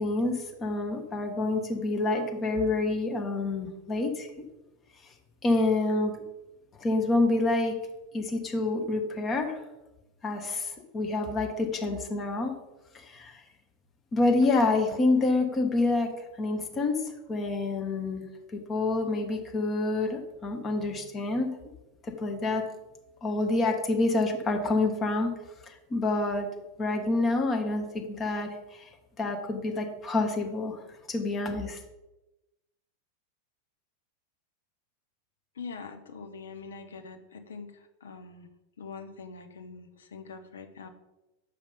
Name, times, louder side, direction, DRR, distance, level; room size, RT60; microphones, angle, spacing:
voice 1, 0.0-4.3 5.4-6.1 6.8-7.7 8.1-9.6 10.2-12.5 12.9-13.4 14.1-16.1 16.4-18.3 18.5-21.5 22.0-22.6 23.2-25.3 25.7-26.5 26.8-28.9 29.2-30.8 31.1-31.8, left 2 dB, 25° left, 4 dB, 1.1 m, -27 dB
voice 2, 35.5-38.5 38.8-40.9, left 5 dB, 65° left, 7 dB, 0.8 m, -43 dB
6.7 x 5.1 x 5.4 m, 1.0 s
figure-of-eight pair, 90°, 0 cm